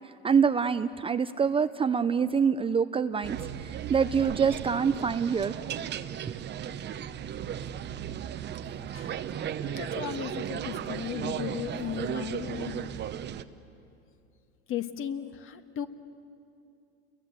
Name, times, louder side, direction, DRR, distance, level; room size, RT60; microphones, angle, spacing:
voice 1, 0.2-3.4 3.9-5.5, right 6 dB, 20° right, 11 dB, 0.5 m, -25 dB
sound 1, 3.2-13.4, right 9 dB, 35° right, 1.0 m, -36 dB
voice 2, 9.6-12.9 14.7-15.9, left 10 dB, 40° left, 8 dB, 1.7 m, -36 dB
29.5 x 22.5 x 8.1 m, 2.6 s
supercardioid pair, 105°, 31 cm